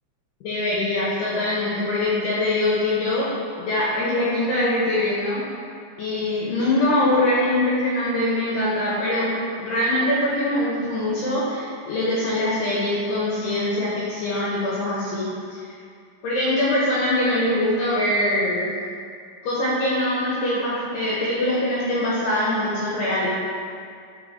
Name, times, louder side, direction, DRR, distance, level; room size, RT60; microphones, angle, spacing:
voice 1, 0.4-3.3 3.6-5.4 6.0-9.3 9.6-15.8 16.2-18.7 19.4-23.4, left 1 dB, 75° left, -8 dB, 2.8 m, -23 dB
5.8 x 4.8 x 3.9 m, 2.3 s
omnidirectional pair, 5.1 m